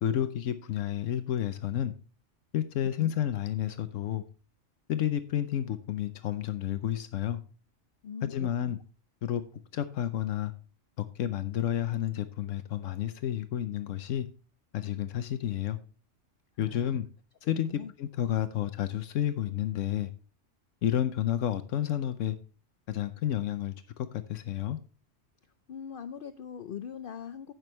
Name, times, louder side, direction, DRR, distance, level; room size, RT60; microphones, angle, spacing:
voice 1, 0.0-1.9 2.5-4.2 4.9-7.4 8.2-8.8 9.2-9.4 9.7-10.5 11.0-14.3 14.7-15.8 16.6-17.1 17.4-20.1 20.8-22.4 22.9-24.8, left 11 dB, 80° left, 1.0 m, -30 dB
voice 2, 8.0-8.7 16.6-17.0 17.4-17.9 25.7-27.5, left 8 dB, 60° left, 0.6 m, -42 dB
16.0 x 6.1 x 3.2 m
omnidirectional pair, 1.3 m